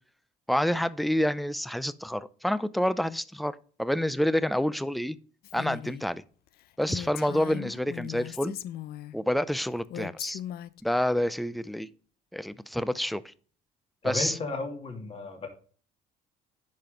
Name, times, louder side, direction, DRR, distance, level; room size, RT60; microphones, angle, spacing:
voice 1, 0.5-5.2 5.5-6.2 6.8-8.6 9.1-10.4 10.8-11.9 12.3-13.3 14.0-14.4, equal, ahead, 0.4 m, -28 dB
Female speech woman speaking, 5.4-6.1 6.5-6.6 6.9-9.2 9.9-10.8, left 12 dB, 65° left, 0.5 m, -38 dB
voice 2, 14.0-15.5, left 3 dB, 35° left, 2.7 m, -33 dB
10.0 x 5.3 x 3.7 m
cardioid pair, 110°, 17 cm